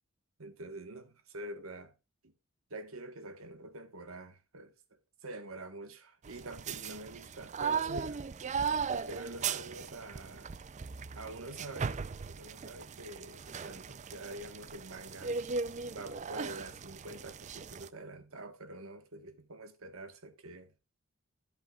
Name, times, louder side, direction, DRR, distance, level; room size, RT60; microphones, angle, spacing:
voice 1, 0.4-1.9 2.2-2.3 2.7-8.2 8.6-10.5 11.1-12.0 12.3-15.4 15.9-20.7, right 2 dB, 85° right, 1.3 m, -46 dB
sound 1, 6.2-17.9, right 5 dB, 35° right, 0.4 m, -38 dB
11.0 x 10.5 x 2.4 m
head